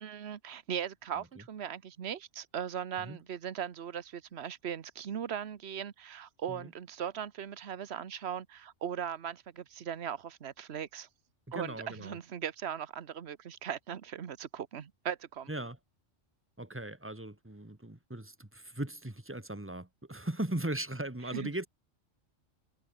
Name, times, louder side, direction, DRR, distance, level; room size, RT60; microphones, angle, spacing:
voice 1, 0.0-11.1 11.5-15.5 21.3-21.5, right 9 dB, 65° right, 1.3 m, -39 dB
voice 2, 11.5-12.2 15.5-15.8 16.6-21.7, right 1 dB, 10° right, 2.2 m, -38 dB
omnidirectional pair, 1.2 m